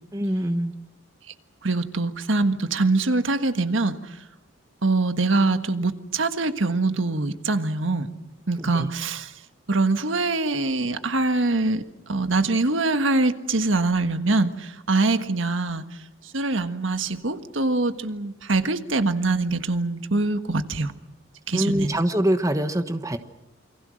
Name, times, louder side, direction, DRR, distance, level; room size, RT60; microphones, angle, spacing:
voice 1, 0.1-0.8 8.6-8.9 21.5-23.2, right 1 dB, 15° right, 8 dB, 1.2 m, -24 dB
voice 2, 1.6-4.2 4.8-8.1 8.5-9.3 9.7-20.9 21.5-22.0, right 3 dB, 75° right, 9 dB, 1.5 m, -24 dB
28.5 x 24.0 x 6.4 m, 0.93 s
head